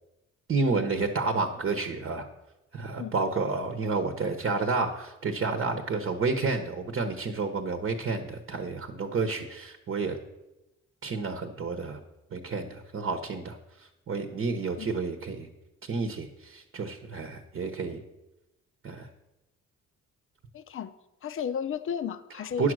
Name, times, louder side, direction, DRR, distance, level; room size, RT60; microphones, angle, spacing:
voice 1, 0.5-2.3 2.7-10.2 11.0-12.0 12.3-13.6 14.1-15.5 15.9-18.0 18.8-19.1 22.6-22.7, right 4 dB, 45° right, 7 dB, 1.1 m, -30 dB
voice 2, 20.5-20.9 21.2-22.7, left 8 dB, 45° left, 12 dB, 0.7 m, -33 dB
9.9 x 6.3 x 6.3 m, 0.97 s
cardioid pair, 90°, 30 cm